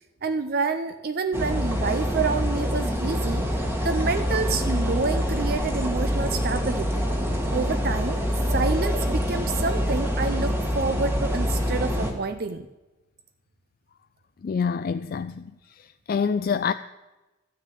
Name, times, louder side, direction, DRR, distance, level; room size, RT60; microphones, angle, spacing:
voice 1, 0.2-7.0 7.5-8.2 8.5-12.7, right 4 dB, 45° right, 0.5 m, -28 dB
sound 1, 1.3-12.1, equal, 10° right, 1.5 m, -25 dB
voice 2, 14.4-15.5 15.8-16.7, left 6 dB, 45° left, 0.3 m, -26 dB
13.0 x 6.5 x 9.1 m
head